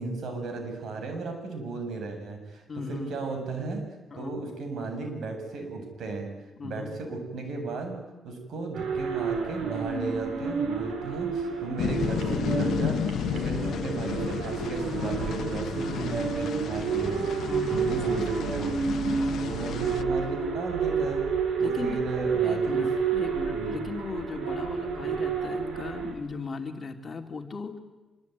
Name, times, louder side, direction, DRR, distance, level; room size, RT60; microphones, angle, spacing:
voice 1, 0.0-2.6 2.9-3.8 4.1-6.3 6.6-8.0 8.2-18.7 19.4-21.2 21.6-22.8 23.5-23.8 25.0-25.2, right 3 dB, 65° right, 5 dB, 7.9 m, -35 dB
voice 2, 2.7-3.2 4.1-4.4 6.6-6.9 13.3-13.6 17.4-18.0 19.1-19.5 21.6-22.0 22.4-27.8, left 4 dB, 35° left, 4 dB, 3.1 m, -37 dB
sound 1, 8.7-26.1, right 6 dB, 85° right, 6.2 m, -30 dB
sound 2, 11.8-20.0, left 9 dB, 70° left, 1.0 m, -32 dB
25.5 x 23.5 x 9.6 m, 1.1 s
cardioid pair, 115°, 0 cm